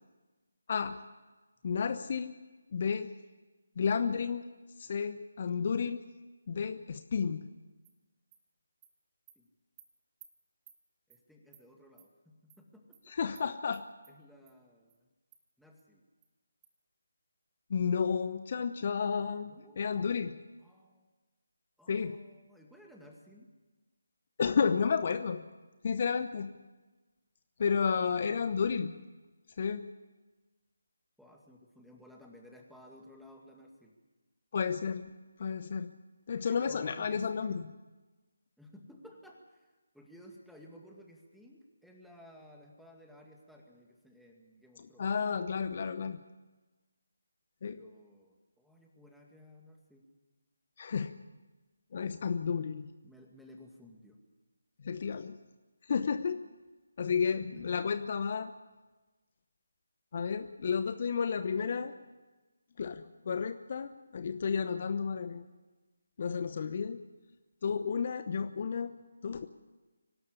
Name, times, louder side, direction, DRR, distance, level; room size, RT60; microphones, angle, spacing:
voice 1, 0.7-1.0 1.6-2.3 2.7-3.1 3.8-4.4 4.8-6.0 6.5-7.5 13.1-13.8 17.7-20.3 21.9-22.2 24.4-25.5 25.8-26.5 27.6-28.9 29.6-29.9 34.5-35.1 35.4-35.9 36.3-37.6 44.8-46.2 47.6-47.8 50.8-51.1 51.9-52.9 54.8-55.4 55.8-56.4 57.0-58.5 60.1-61.9 62.8-65.5 66.2-67.0 67.6-68.9 69.2-69.5, left 6 dB, 40° left, 10 dB, 0.9 m, -32 dB
Animal, 7.8-7.9 8.3-8.4 8.8-8.9 9.3-9.4 9.8-9.9 10.2-10.3 10.7-10.8 11.1-11.2 11.5-11.6 12.0-12.1 12.5-12.6 12.9-13.0 13.4-13.5 13.7-14.1 14.5-14.6 14.9-15.0 15.3-15.4 15.8-15.9 16.2-16.3 16.6-16.7, right 11 dB, 20° right, 1.5 m, -58 dB
voice 2, 11.1-13.2 14.1-15.1 15.6-16.0 19.5-19.8 20.6-21.1 21.8-23.5 31.2-33.9 36.3-37.2 38.6-45.1 47.6-50.0 53.0-54.2 57.4-57.8 61.6-61.9, left 1 dB, ahead, -1 dB, 2.2 m, -56 dB
24.0 x 12.5 x 10.0 m, 1.2 s
figure-of-eight pair, 155°, 0 cm